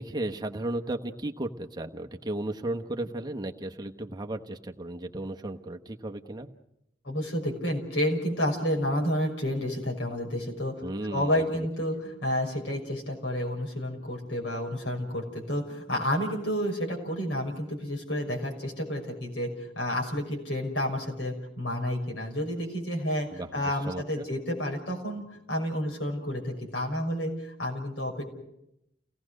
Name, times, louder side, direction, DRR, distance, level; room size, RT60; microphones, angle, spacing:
voice 1, 0.0-6.5 10.8-11.7 23.3-24.3, right 1 dB, 25° right, 4 dB, 1.1 m, -35 dB
voice 2, 7.0-10.7 11.1-19.5 19.7-28.3, equal, 75° left, 0 dB, 6.1 m, -30 dB
29.5 x 18.0 x 6.5 m, 0.81 s
head